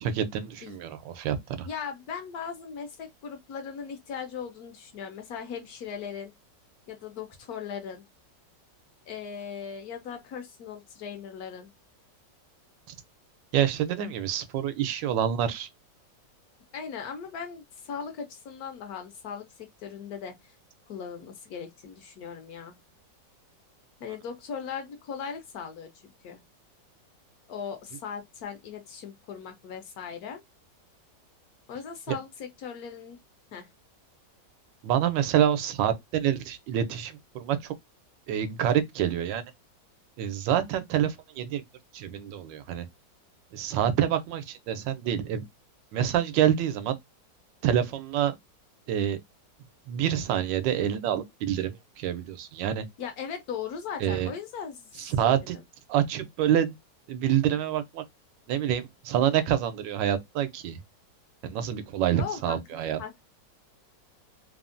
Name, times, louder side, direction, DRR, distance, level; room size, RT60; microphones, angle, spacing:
voice 1, 0.0-1.7 13.5-15.7 34.8-37.7 38.3-39.4 40.2-41.6 41.9-42.8 43.5-45.4 45.9-47.0 47.6-48.3 48.9-49.2 49.9-52.8 54.0-54.3 55.0-55.6 55.9-56.8 57.1-58.0 58.5-60.8 61.4-63.0, right 10 dB, 90° right, 1.3 m, -27 dB
voice 2, 1.6-6.3 6.9-8.0 9.1-11.7 16.7-20.5 20.9-22.8 24.0-26.4 27.5-30.4 31.7-33.2 33.5-33.7 53.0-54.9 55.2-55.6 62.2-63.1, left 7 dB, 70° left, 1.0 m, -38 dB
3.4 x 2.0 x 2.5 m
omnidirectional pair, 1.9 m